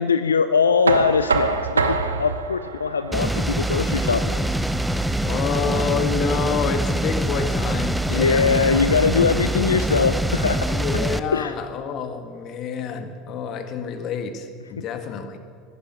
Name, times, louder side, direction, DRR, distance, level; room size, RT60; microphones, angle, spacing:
voice 1, 0.0-4.4 8.1-10.7 11.3-11.5, left 5 dB, 90° left, 11 dB, 0.4 m, -21 dB
Knock, 0.9-6.7, right 4 dB, 90° right, 0.8 m, -27 dB
sound 1, 3.1-11.2, right 1 dB, 5° right, 0.7 m, -24 dB
voice 2, 5.2-9.5 10.7-15.4, left 6 dB, 50° left, 7 dB, 1.6 m, -28 dB
11.0 x 11.0 x 9.8 m, 2.1 s
hypercardioid pair, 75°, 0 cm